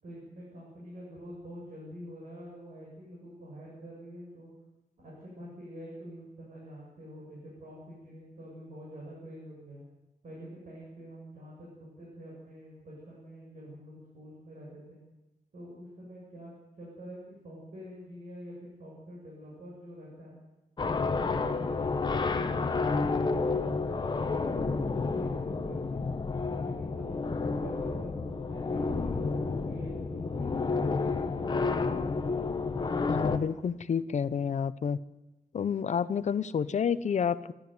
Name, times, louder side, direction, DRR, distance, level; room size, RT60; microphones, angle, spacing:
voice 1, 0.0-4.5 5.0-9.8 10.2-15.0 15.5-16.5 16.8-20.4 20.8-26.1 26.6-31.5, equal, 55° right, -5 dB, 7.9 m, -46 dB
sound 1, 20.8-33.4, left 4 dB, 30° left, 1.1 m, -30 dB
voice 2, 33.1-35.0 35.5-37.5, left 7 dB, 45° left, 15 dB, 0.8 m, -29 dB
29.0 x 13.0 x 9.6 m, 1.0 s
wide cardioid pair, 170°, 16 cm